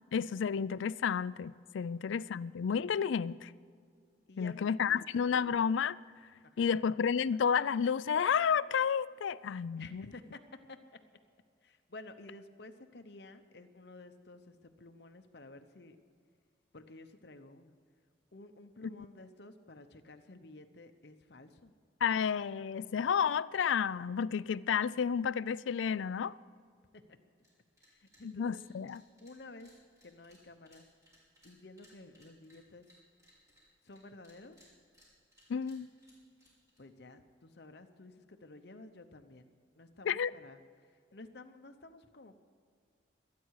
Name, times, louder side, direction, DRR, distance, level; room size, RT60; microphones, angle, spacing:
voice 1, 0.1-3.5 4.4-6.0 6.6-10.0 22.0-26.4 28.2-29.0 35.5-35.9 40.0-40.3, left 7 dB, 75° left, 0.4 m, -31 dB
voice 2, 1.8-2.4 4.3-5.1 6.4-6.6 9.8-10.4 10.7-10.8 11.6-16.0 16.7-17.7 18.3-21.7 26.9-27.2 27.9-28.6 29.2-29.7 30.0-30.8 31.4-32.9 33.8-34.6 36.8-39.5 39.8-40.6 41.1-42.4, left 2 dB, 55° left, 0.9 m, -52 dB
sound 1, 27.4-27.5 27.8-28.2 28.5-34.0 34.2-36.8, equal, 15° right, 4.8 m, -64 dB
25.5 x 9.4 x 4.8 m
head